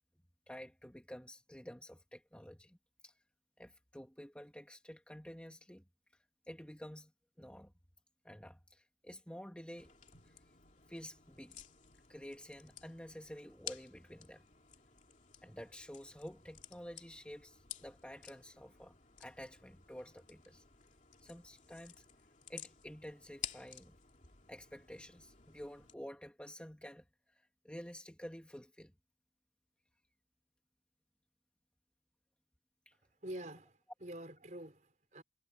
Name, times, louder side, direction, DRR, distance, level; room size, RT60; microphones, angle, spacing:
voice 1, 0.5-2.8 3.0-3.2 3.6-5.8 6.5-7.1 7.4-7.7 8.2-10.0 10.3-10.4 10.9-11.6 12.1-14.4 15.4-20.6 21.2-22.0 22.5-24.0 24.5-28.9 32.9-33.0, equal, 5° left, 1.7 m, -50 dB
sound 1, 9.8-25.9, left 9 dB, 40° left, 2.7 m, -53 dB
voice 2, 33.2-35.2, right 1 dB, 40° right, 4.7 m, -47 dB
head